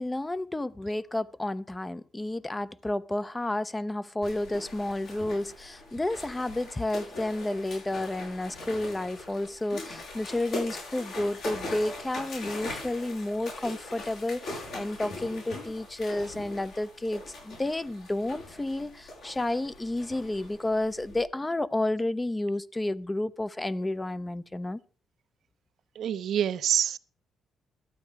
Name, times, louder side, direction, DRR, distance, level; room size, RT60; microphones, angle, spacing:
voice 1, 0.0-24.8, left 1 dB, 15° left, 0.5 m, -31 dB
sound 1, 4.2-21.2, left 2 dB, 80° left, 7.4 m, -41 dB
voice 2, 26.0-27.0, right 9 dB, 70° right, 0.5 m, -26 dB
12.5 x 9.0 x 4.6 m
cardioid pair, 90°, 0 cm